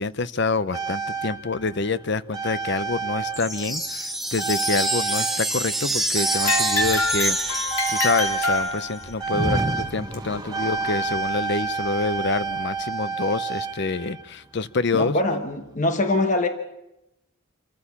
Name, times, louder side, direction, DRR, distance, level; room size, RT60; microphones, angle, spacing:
voice 1, 0.0-7.4 7.9-15.2, left 3 dB, 55° left, 15 dB, 0.7 m, -27 dB
sound 1, 0.7-4.0 4.4-14.4 15.4-15.5, right 4 dB, 20° right, 1.0 m, -29 dB
sound 2, 3.3-8.8, right 1 dB, ahead, 1.3 m, -27 dB
sound 3, 6.4-9.2 10.1-10.2 11.1-11.2 12.0-12.1, left 3 dB, 85° left, 3.4 m, -26 dB
voice 2, 14.9-16.5, left 2 dB, 35° left, 6 dB, 1.1 m, -23 dB
27.0 x 14.5 x 7.1 m, 0.92 s
head